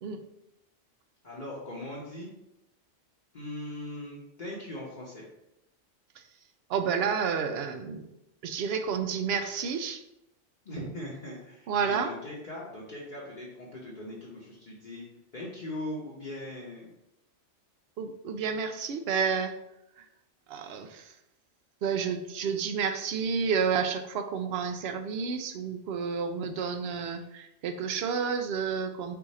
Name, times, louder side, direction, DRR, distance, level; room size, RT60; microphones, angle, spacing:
voice 1, 1.2-2.3 3.3-5.3 10.6-15.0 15.3-16.9, left 1 dB, 45° left, -6 dB, 0.9 m, -40 dB
voice 2, 6.7-8.1 8.4-10.0 11.7-12.1 18.0-19.5 20.0-20.1 20.5-21.1 21.8-29.2, right 6 dB, 65° right, 7 dB, 0.7 m, -30 dB
4.8 x 2.5 x 4.0 m, 0.86 s
omnidirectional pair, 1.2 m